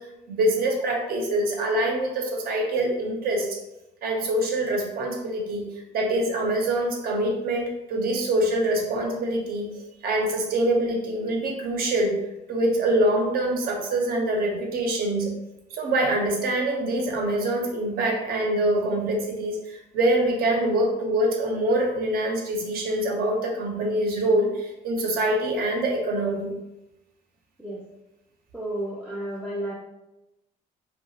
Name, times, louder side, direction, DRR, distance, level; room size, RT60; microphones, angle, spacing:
voice 1, 0.0-3.6 4.0-5.6 5.9-9.7 10.0-12.2 12.5-15.3 15.7-26.6, right 1 dB, 60° right, 1 dB, 0.7 m, -25 dB
voice 2, 28.5-29.7, right 1 dB, 5° right, -6 dB, 0.4 m, -32 dB
2.7 x 2.4 x 2.8 m, 0.94 s
cardioid pair, 110°, 17 cm